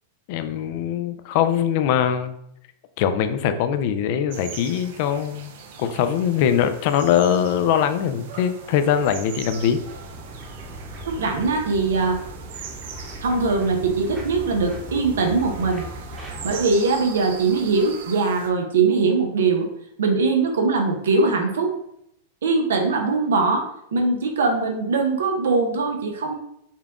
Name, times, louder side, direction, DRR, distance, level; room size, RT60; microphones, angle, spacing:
voice 1, 0.3-2.4 3.0-9.8, left 9 dB, 55° left, 9 dB, 0.4 m, -22 dB
sound 1, 4.3-18.5, right 6 dB, 65° right, 0.7 m, -40 dB
sound 2, 8.6-16.6, equal, 15° right, 1.0 m, -39 dB
voice 2, 11.0-12.2 13.2-15.8 16.4-19.7 20.0-21.7 22.4-23.6 23.9-26.3, right 4 dB, 90° right, 3 dB, 0.9 m, -21 dB
5.6 x 2.4 x 3.5 m, 0.75 s
supercardioid pair, 130°, 0 cm